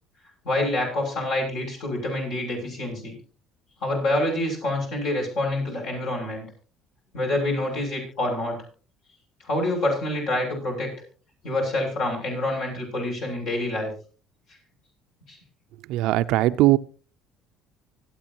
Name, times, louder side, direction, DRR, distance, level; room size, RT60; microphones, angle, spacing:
voice 1, 0.4-3.1 3.8-6.4 7.1-8.6 9.4-10.9 11.4-13.9 15.3-15.4, left 1 dB, 70° left, -1 dB, 7.2 m, -27 dB
voice 2, 15.9-16.8, right 16 dB, 75° right, 14 dB, 0.5 m, -19 dB
25.5 x 8.7 x 2.9 m, 0.36 s
supercardioid pair, 75°, 0 cm